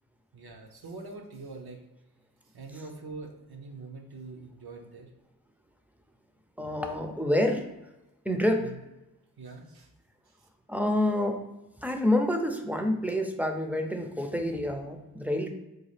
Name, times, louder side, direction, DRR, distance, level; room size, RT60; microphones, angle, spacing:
voice 1, 0.3-1.8 2.5-5.1 8.6-8.8 9.4-9.9 10.3-10.5, right 3 dB, 85° right, 2 dB, 0.7 m, -44 dB
voice 2, 6.6-7.6 8.3-8.7 10.7-11.4 11.8-15.5, left 1 dB, 5° right, 3 dB, 0.4 m, -27 dB
3.8 x 2.4 x 3.2 m, 1.0 s
wide cardioid pair, 75°, 36 cm